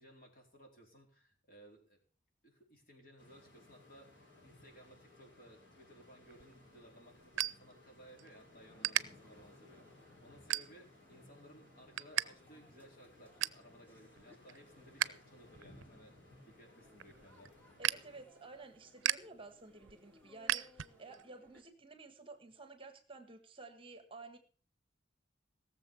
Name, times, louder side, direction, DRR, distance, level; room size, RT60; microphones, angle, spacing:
voice 1, 0.0-2.0 2.4-17.5, equal, 45° left, 2 dB, 4.1 m, -60 dB
sound 1, 3.2-18.2, left 2 dB, 65° left, 5.4 m, -61 dB
sound 2, 6.2-8.3 8.6-9.0 9.6-9.8 10.4-11.1 11.4-12.3 12.5-12.6 13.0-13.7 14.1-15.1 15.5-21.2, right 12 dB, 85° right, 0.5 m, -38 dB
sound 3, 8.2-21.6, left 1 dB, 10° left, 2.8 m, -67 dB
voice 2, 17.8-24.4, right 3 dB, 25° right, 7 dB, 1.4 m, -53 dB
17.5 x 7.0 x 7.0 m, 0.43 s
head